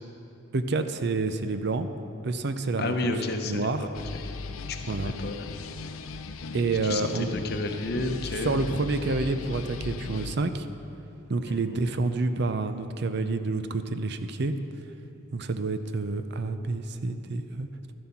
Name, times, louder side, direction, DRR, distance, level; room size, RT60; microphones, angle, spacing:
voice 1, 0.5-1.9 2.2-3.9 4.9-5.1 6.5-7.3 8.3-10.7 11.3-14.5 15.3-17.9, right 3 dB, 55° right, 10 dB, 0.5 m, -28 dB
voice 2, 2.8-3.9 5.0-5.5 6.8-8.6 11.5-11.8, left 2 dB, 50° left, 5 dB, 0.8 m, -31 dB
sound 1, 3.9-10.4, left 4 dB, 80° left, 0.5 m, -38 dB
12.5 x 7.7 x 5.9 m, 2.8 s
head